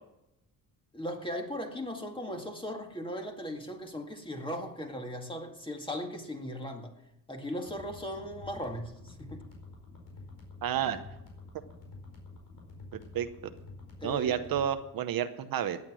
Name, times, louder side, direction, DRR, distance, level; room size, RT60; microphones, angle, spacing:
voice 1, 0.9-6.9 7.3-9.5 14.0-14.5, left 1 dB, 15° left, 3 dB, 2.1 m, -38 dB
sound 1, 7.7-14.7, left 3 dB, 80° left, 4.7 m, -49 dB
voice 2, 10.6-11.0 12.9-13.3 14.0-15.8, right 9 dB, 60° right, 10 dB, 0.9 m, -30 dB
16.5 x 9.6 x 6.2 m, 0.87 s
cardioid pair, 115°, 39 cm